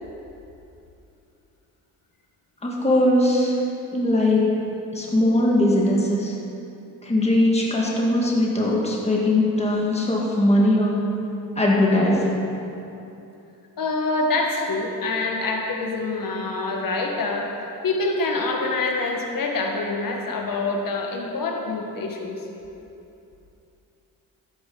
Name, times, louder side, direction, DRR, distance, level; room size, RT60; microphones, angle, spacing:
voice 1, 2.6-3.6 3.9-6.4 7.0-11.1 11.6-12.5, left 1 dB, 15° left, -3 dB, 1.9 m, -20 dB
voice 2, 13.8-22.4, left 3 dB, 60° left, 1 dB, 1.6 m, -26 dB
12.5 x 9.3 x 4.0 m, 2.8 s
supercardioid pair, 60°, 37 cm